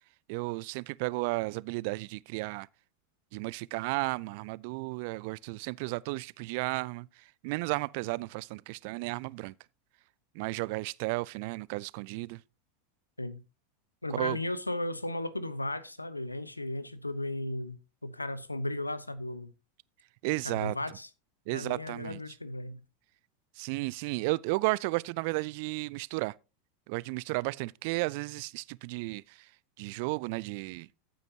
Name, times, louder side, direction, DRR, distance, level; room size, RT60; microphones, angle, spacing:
voice 1, 0.3-2.7 3.3-7.1 7.4-9.5 10.3-12.4 14.1-14.4 20.2-20.8 21.5-22.2 23.6-26.4 26.9-29.5 29.8-30.9, right 24 dB, 55° right, 0.4 m, -33 dB
voice 2, 14.0-19.5 20.4-21.1 21.5-22.8, left 1 dB, 90° left, 0.9 m, -35 dB
14.0 x 9.1 x 2.8 m
figure-of-eight pair, 85°, 0 cm